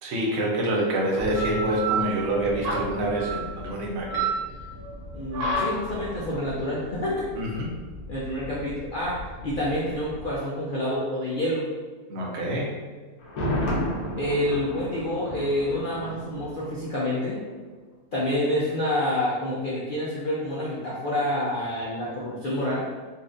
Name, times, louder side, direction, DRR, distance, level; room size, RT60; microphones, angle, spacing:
voice 1, 0.0-4.2 7.3-7.7 12.1-12.7, right 1 dB, 55° right, -2 dB, 0.9 m, -26 dB
sound 1, 1.2-10.4, right 2 dB, 85° right, 1.2 m, -31 dB
voice 2, 5.1-7.2 8.1-11.7 14.2-17.4 18.1-22.9, left 1 dB, 55° left, -7 dB, 0.5 m, -28 dB
Thunder, 13.2-17.1 17.4-17.5, left 1 dB, 85° left, 1.3 m, -31 dB
4.2 x 2.5 x 2.5 m, 1.5 s
omnidirectional pair, 1.6 m